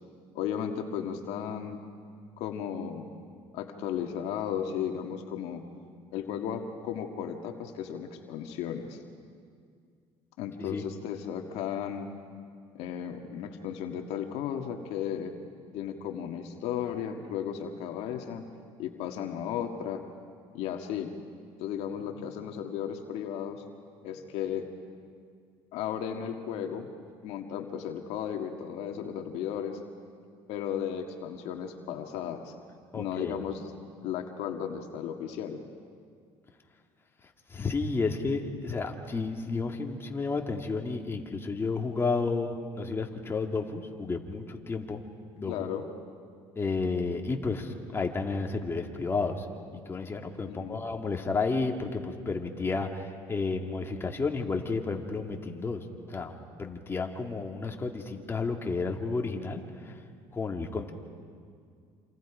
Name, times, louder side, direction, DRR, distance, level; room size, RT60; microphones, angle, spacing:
voice 1, 0.3-1.8 2.4-3.1 3.5-5.6 6.1-9.0 10.4-12.1 12.7-15.3 15.7-18.5 18.8-20.0 20.5-21.1 21.6-23.6 24.0-24.7 25.7-26.9 27.2-29.8 30.5-32.5 32.9-33.7 34.0-35.6 45.5-45.9 50.5-50.8, left 8 dB, 75° left, 4 dB, 1.8 m, -35 dB
voice 2, 32.9-33.4 37.5-45.0 45.3-45.6 46.6-49.5 49.9-60.0 60.3-60.9, left 4 dB, 20° left, 2 dB, 2.4 m, -32 dB
28.0 x 27.0 x 5.1 m, 2.2 s
cardioid pair, 105°, 11 cm